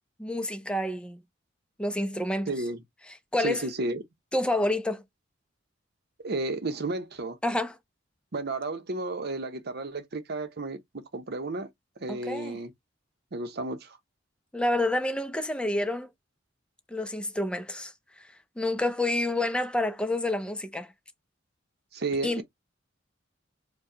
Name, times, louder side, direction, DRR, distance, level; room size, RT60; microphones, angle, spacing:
voice 1, 0.2-1.2 1.8-2.5 3.3-3.7 4.3-5.0 7.4-7.8 12.1-12.6 14.5-16.1 16.9-17.9 18.6-20.9 22.2-22.4, left 1 dB, 5° left, 0.5 m, -28 dB
voice 2, 2.5-2.8 3.4-4.0 6.2-7.4 8.3-11.7 12.0-12.7 13.3-14.0 21.9-22.4, right 2 dB, 55° right, 0.8 m, -32 dB
4.6 x 2.3 x 2.7 m
head